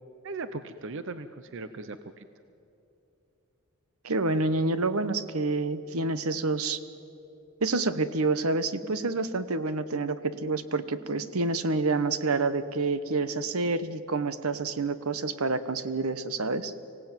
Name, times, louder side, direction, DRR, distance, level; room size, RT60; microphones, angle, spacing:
voice 1, 0.2-2.3, right 3 dB, 60° right, 12 dB, 0.7 m, -38 dB
voice 2, 4.0-6.8 7.6-16.7, right 3 dB, 80° right, 13 dB, 1.1 m, -28 dB
24.5 x 17.0 x 9.1 m, 2.9 s
head